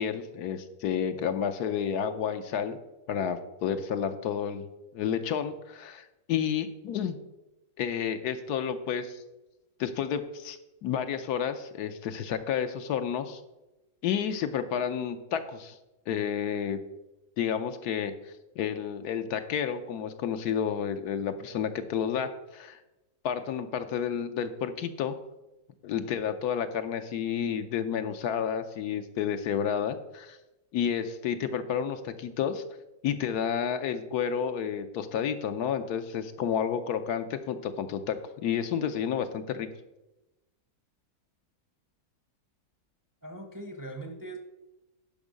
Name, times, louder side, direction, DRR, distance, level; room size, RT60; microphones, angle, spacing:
voice 1, 0.0-2.8 3.1-4.6 4.9-7.2 7.8-9.2 9.8-13.4 14.0-15.8 16.1-16.8 17.4-22.8 23.2-25.2 25.8-30.4 30.7-32.6 33.0-39.7, left 8 dB, 80° left, 9 dB, 1.3 m, -30 dB
voice 2, 43.2-44.4, right 2 dB, 20° right, 5 dB, 0.6 m, -40 dB
11.0 x 5.5 x 5.1 m, 0.99 s
omnidirectional pair, 1.7 m